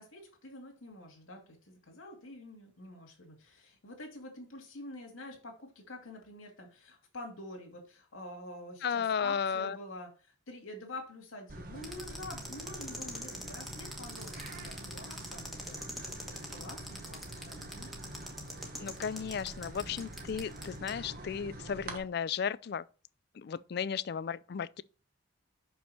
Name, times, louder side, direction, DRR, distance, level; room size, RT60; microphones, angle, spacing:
voice 1, 0.0-15.8 16.3-17.9, left 2 dB, 75° left, 2.5 m, -47 dB
voice 2, 8.8-9.8 18.8-22.8 23.3-24.8, left 7 dB, 50° left, 0.3 m, -34 dB
sound 1, 11.5-22.0, right 1 dB, 45° right, 1.2 m, -46 dB
sound 2, 11.8-20.9, equal, ahead, 1.4 m, -43 dB
6.3 x 5.7 x 4.2 m
head